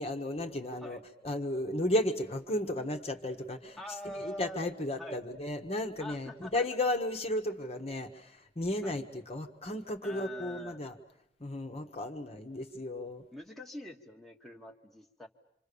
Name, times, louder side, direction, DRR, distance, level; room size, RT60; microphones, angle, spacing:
voice 1, 0.0-3.8 4.1-11.0 11.4-13.2, left 1 dB, 35° left, 4 dB, 1.4 m, -34 dB
voice 2, 3.8-4.6 5.0-5.2 6.0-6.6 8.8-9.0 10.0-10.8 13.3-15.3, left 1 dB, ahead, 0 dB, 1.5 m, -44 dB
26.5 x 26.0 x 6.9 m, 0.74 s
head